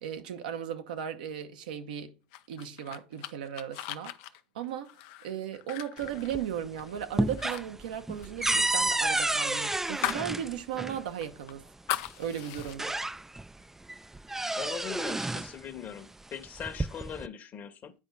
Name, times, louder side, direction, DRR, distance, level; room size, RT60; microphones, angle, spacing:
voice 1, 0.0-2.2 2.5-4.1 4.5-4.9 5.2-11.6 11.9-13.0, right 9 dB, 85° right, 0.9 m, -36 dB
sound 1, 2.3-6.9 7.3-7.6 7.9-10.3 10.7-10.8 11.2-12.8, left 14 dB, 70° left, 0.6 m, -38 dB
sound 2, 6.0-6.7 7.0-11.0 12.1-12.2 12.6-13.5 13.9-15.6 16.5-17.3, right 2 dB, 10° right, 0.3 m, -30 dB
voice 2, 14.5-17.9, left 8 dB, 45° left, 1.2 m, -40 dB
8.8 x 4.7 x 3.9 m
hypercardioid pair, 85°, 4 cm